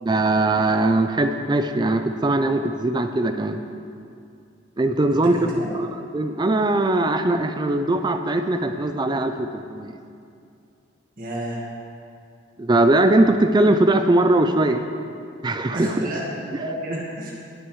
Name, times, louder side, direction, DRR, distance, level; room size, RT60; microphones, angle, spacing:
voice 1, 0.0-3.6 4.8-5.9 6.1-9.9 12.6-14.8 15.4-16.1, right 2 dB, 20° right, 7 dB, 0.4 m, -20 dB
voice 2, 5.1-5.7 11.2-11.6 15.7-17.4, right 1 dB, 45° right, -4 dB, 1.7 m, -31 dB
19.5 x 7.9 x 3.2 m, 2.4 s
head